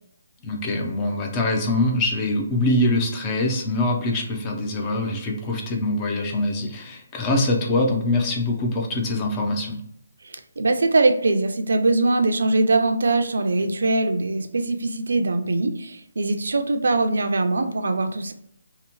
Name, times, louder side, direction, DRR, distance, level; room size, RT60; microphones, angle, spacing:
voice 1, 0.4-9.8, left 2 dB, 15° left, 0 dB, 0.3 m, -24 dB
voice 2, 10.2-18.3, right 2 dB, 70° right, 7 dB, 0.3 m, -22 dB
2.8 x 2.0 x 2.9 m, 0.71 s
hypercardioid pair, 170°, 0 cm